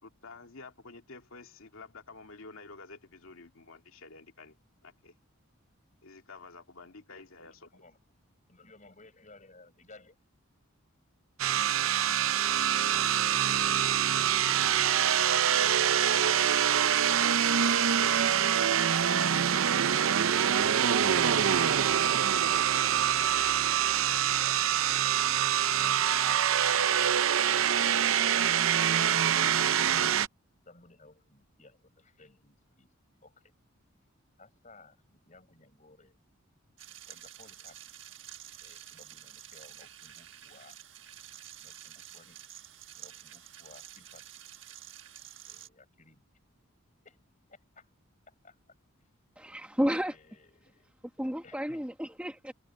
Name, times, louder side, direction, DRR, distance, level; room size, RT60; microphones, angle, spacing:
voice 1, 0.0-4.6 4.8-5.1 6.0-7.8, left 3 dB, 80° left, 2.4 m, -50 dB
voice 2, 7.4-8.0 8.5-10.2 23.8-26.2 26.7-26.9 30.7-32.9 33.2-33.5 34.4-36.2 37.1-37.8 38.6-40.8 41.6-42.4 43.0-44.4 45.5-46.2 47.0-47.2 47.5-47.9 48.3-48.6 49.0-49.1 49.8-50.9 51.4-52.0, left 3 dB, 35° left, 5.8 m, -57 dB
sound 1, 11.4-30.3, right 9 dB, 75° right, 0.6 m, -25 dB
sound 2, 36.8-45.7, right 11 dB, 60° right, 1.5 m, -49 dB
voice 3, 49.4-50.1 51.2-52.5, equal, 5° right, 1.5 m, -31 dB
head